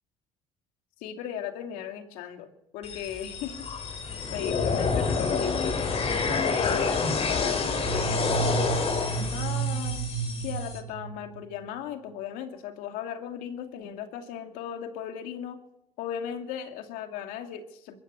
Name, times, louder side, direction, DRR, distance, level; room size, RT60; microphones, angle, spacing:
voice 1, 1.0-2.5 2.7-3.6 4.3-5.7 6.3-10.0 10.4-15.6 16.0-18.0, left 9 dB, 80° left, 5 dB, 2.5 m, -36 dB
sound 1, 2.8-10.8, left 4 dB, 45° left, 5.4 m, -28 dB
sound 2, 7.7-11.8, right 6 dB, 85° right, 2.7 m, -32 dB
23.0 x 14.0 x 8.3 m, 0.85 s
supercardioid pair, 70°, 14 cm